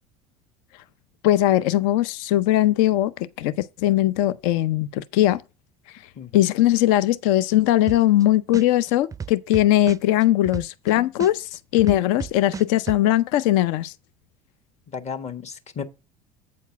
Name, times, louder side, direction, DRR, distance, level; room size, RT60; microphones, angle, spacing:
voice 1, 1.2-3.1 3.4-5.4 6.3-13.9, left 14 dB, 70° left, 0.6 m, -20 dB
voice 2, 6.1-6.5 14.9-15.8, left 6 dB, 40° left, 1.4 m, -34 dB
sound 1, 7.9-8.2 8.5-10.9 11.2-13.0, right 5 dB, 20° right, 0.4 m, -33 dB
8.4 x 4.6 x 5.8 m
hypercardioid pair, 75°, 18 cm